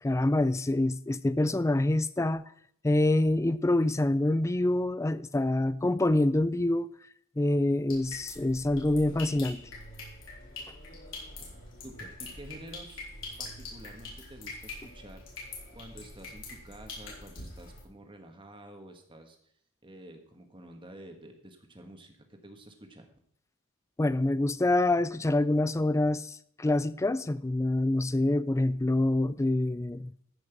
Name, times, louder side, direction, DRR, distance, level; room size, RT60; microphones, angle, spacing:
voice 1, 0.0-2.4 2.8-6.9 7.4-9.6 24.0-30.1, left 1 dB, 15° left, 0.4 m, -26 dB
sound 1, 7.9-17.8, left 3 dB, 65° left, 4.6 m, -44 dB
voice 2, 11.5-13.1 13.4-15.2 15.7-19.5 19.8-23.1, right 1 dB, 25° right, 1.6 m, -49 dB
14.0 x 6.1 x 6.0 m
head